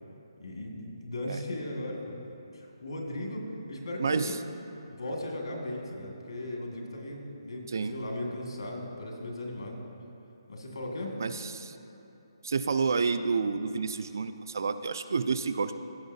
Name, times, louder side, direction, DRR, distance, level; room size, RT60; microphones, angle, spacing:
voice 1, 0.4-2.0 2.5-4.4 4.9-9.8 10.5-11.1, left 1 dB, 85° left, 0 dB, 1.9 m, -37 dB
voice 2, 4.0-4.3 7.7-8.0 11.2-11.8 12.4-15.7, right 5 dB, 45° right, 11 dB, 0.3 m, -29 dB
16.0 x 6.3 x 2.7 m, 2.9 s
hypercardioid pair, 180°, 3 cm